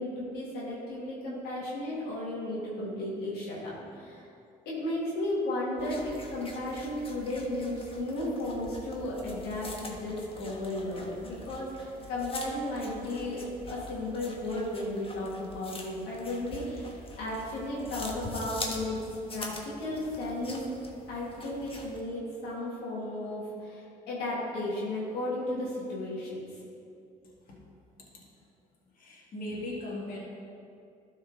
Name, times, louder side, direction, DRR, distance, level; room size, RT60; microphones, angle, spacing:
voice 1, 0.0-4.2 4.7-13.4 13.7-16.9 17.2-19.0 19.3-20.6 21.1-26.5, left 1 dB, 85° left, -6 dB, 1.9 m, -34 dB
sound 1, 5.8-22.0, left 2 dB, 35° left, 1.3 m, -44 dB
voice 2, 27.2-27.6 28.0-28.2 28.9-30.2, left 1 dB, 60° left, -4 dB, 1.9 m, -39 dB
12.0 x 4.3 x 3.8 m, 2.5 s
supercardioid pair, 75°, 16 cm